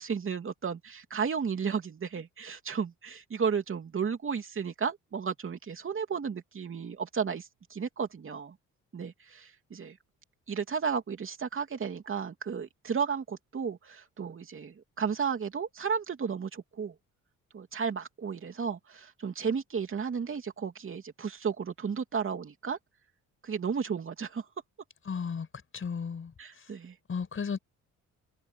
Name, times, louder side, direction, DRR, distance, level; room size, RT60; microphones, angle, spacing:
voice 1, 0.0-8.5 8.9-10.0 10.5-16.9 17.5-22.8 23.4-24.4 26.4-26.9, right 6 dB, 45° right, 3.1 m, -33 dB
voice 2, 25.1-25.5 25.7-26.3 27.1-27.6, left 6 dB, 45° left, 6.6 m, -34 dB
cardioid pair, 90°, 30 cm